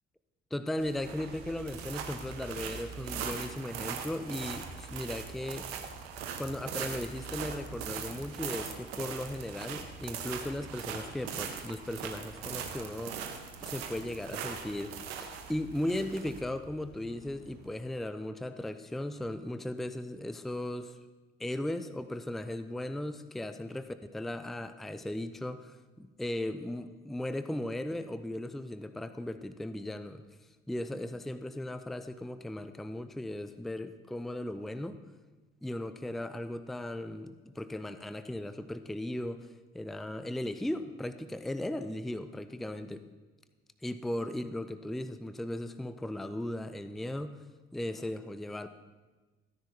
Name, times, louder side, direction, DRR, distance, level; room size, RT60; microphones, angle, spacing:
voice 1, 0.5-5.7 6.4-13.3 13.6-21.0 21.4-30.2 30.7-35.0 35.6-39.5 39.7-43.1 43.8-47.4 47.7-48.7, left 1 dB, ahead, 11 dB, 0.5 m, -37 dB
sound 1, 0.8-17.7, right 6 dB, 80° right, 1.0 m, -41 dB
14.5 x 10.0 x 2.9 m, 1.3 s
hypercardioid pair, 50°, 30 cm